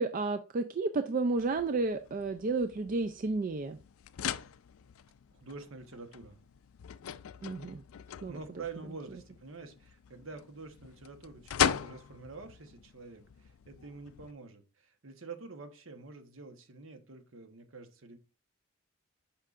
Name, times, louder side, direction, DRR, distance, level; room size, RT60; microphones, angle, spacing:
voice 1, 0.0-3.8 7.4-7.8 8.2-8.4, right 3 dB, 40° right, 9 dB, 0.3 m, -31 dB
sound 1, 1.4-14.3, left 9 dB, 80° left, 0.4 m, -39 dB
voice 2, 5.3-6.4 8.3-18.2, right 4 dB, 65° right, 7 dB, 1.1 m, -47 dB
8.7 x 5.5 x 2.5 m, 0.34 s
head